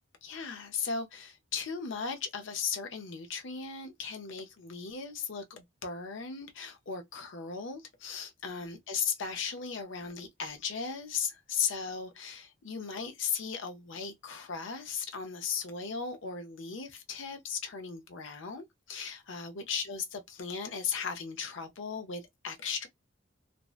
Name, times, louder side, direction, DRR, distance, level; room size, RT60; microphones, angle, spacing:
voice 1, 0.2-22.9, left 6 dB, 70° left, 0.5 m, -37 dB
2.6 x 2.1 x 2.3 m
head